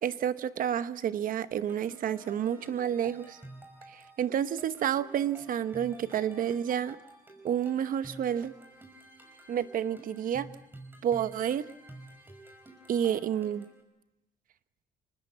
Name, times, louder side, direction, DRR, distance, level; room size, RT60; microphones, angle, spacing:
voice 1, 0.0-3.4 3.9-7.0 7.4-8.5 9.5-10.5 11.0-11.6 12.9-13.7, right 9 dB, 55° right, 13 dB, 1.0 m, -30 dB
sound 1, 1.5-13.8, right 2 dB, 10° right, 5.3 m, -51 dB
27.5 x 19.5 x 8.6 m, 0.93 s
cardioid pair, 110°, 17 cm